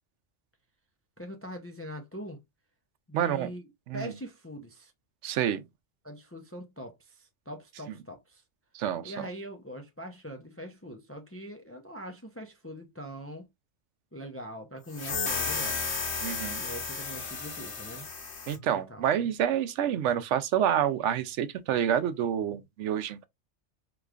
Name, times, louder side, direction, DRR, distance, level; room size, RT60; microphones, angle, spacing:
voice 1, 1.2-2.4 3.1-3.6 3.9-4.9 6.0-8.4 9.0-13.5 14.1-15.8 16.6-18.1 18.7-19.1, equal, 20° left, 0.4 m, -42 dB
voice 2, 3.1-3.5 3.9-4.1 5.2-5.6 8.7-9.3 16.2-16.6 18.5-23.3, right 9 dB, 80° right, 0.9 m, -28 dB
sound 1, 14.9-18.6, left 4 dB, 70° left, 1.4 m, -33 dB
4.9 x 3.0 x 2.3 m
omnidirectional pair, 1.2 m